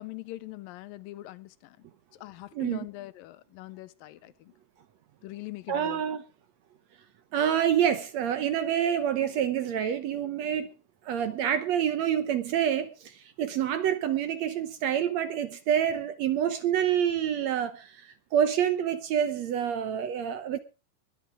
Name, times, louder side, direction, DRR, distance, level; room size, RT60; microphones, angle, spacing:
voice 1, 0.0-1.9 2.1-4.5 5.2-6.0, left 17 dB, 90° left, 2.5 m, -42 dB
voice 2, 2.6-2.9 5.7-6.2 7.3-10.7 11.1-20.6, right 9 dB, 70° right, 1.8 m, -27 dB
21.5 x 8.0 x 4.9 m
omnidirectional pair, 3.9 m